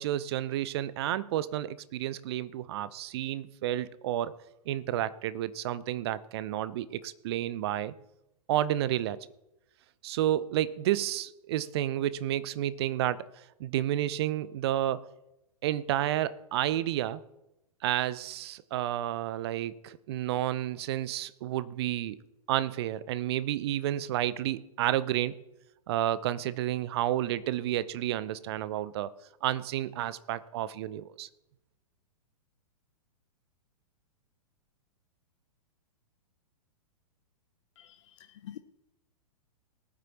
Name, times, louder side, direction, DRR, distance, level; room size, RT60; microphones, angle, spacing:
voice 1, 0.0-4.3 4.7-7.9 8.5-9.2 10.0-13.2 13.6-15.0 15.6-17.2 17.8-22.2 22.5-25.4 25.9-29.1 29.4-31.3, right 12 dB, 45° right, 0.7 m, -30 dB
voice 2, 37.8-38.6, left 11 dB, 50° left, 0.7 m, -47 dB
19.5 x 9.2 x 3.0 m
figure-of-eight pair, 110°, 19 cm